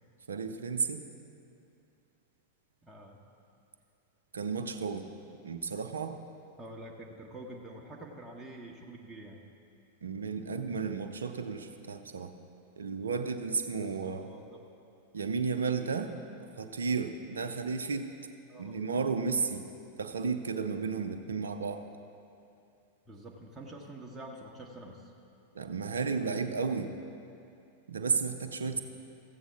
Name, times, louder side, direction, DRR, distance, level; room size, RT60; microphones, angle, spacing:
voice 1, 0.3-1.1 4.3-5.0 5.4-6.2 10.0-12.3 12.8-14.3 15.1-16.1 16.6-18.1 18.6-19.7 20.0-21.8 25.5-27.0 27.9-28.8, right 5 dB, 70° right, 7 dB, 0.5 m, -33 dB
voice 2, 2.8-3.2 6.6-9.4 13.7-14.6 18.5-18.8 23.1-25.1 28.7-28.8, right 1 dB, 15° right, -2 dB, 1.0 m, -47 dB
14.0 x 8.2 x 3.7 m, 2.6 s
figure-of-eight pair, 90°, 0 cm